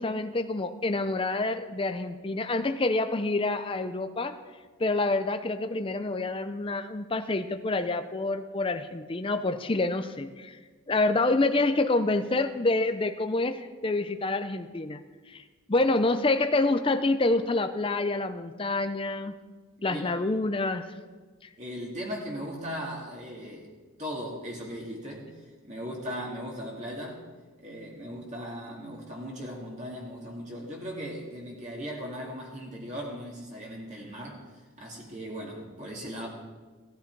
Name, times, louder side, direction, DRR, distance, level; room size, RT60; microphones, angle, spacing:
voice 1, 0.0-4.4 4.8-10.6 10.9-15.0 15.3-15.4 15.7-19.3 19.8-20.8, left 2 dB, 25° left, 8 dB, 0.5 m, -27 dB
voice 2, 19.8-20.2 21.6-23.7 24.0-27.2 27.6-34.4 34.8-36.3, equal, 35° right, -2 dB, 2.2 m, -38 dB
17.0 x 12.5 x 4.6 m, 1.4 s
head